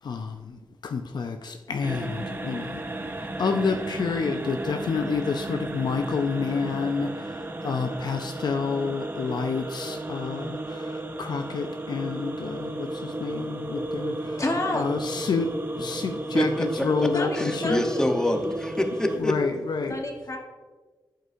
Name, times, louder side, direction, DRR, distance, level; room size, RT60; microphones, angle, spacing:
voice 1, 0.0-14.4 14.7-17.8 19.2-20.0, left 5 dB, 70° left, 6 dB, 0.4 m, -29 dB
sound 1, 1.8-19.2, right 2 dB, 30° right, 0.7 m, -34 dB
voice 2, 14.4-15.0 17.1-18.0 19.9-20.4, left 2 dB, 45° left, 2 dB, 1.1 m, -29 dB
voice 3, 16.3-19.4, left 1 dB, 10° left, 4 dB, 0.8 m, -26 dB
11.0 x 5.2 x 2.6 m, 1.4 s
cardioid pair, 60°, 8 cm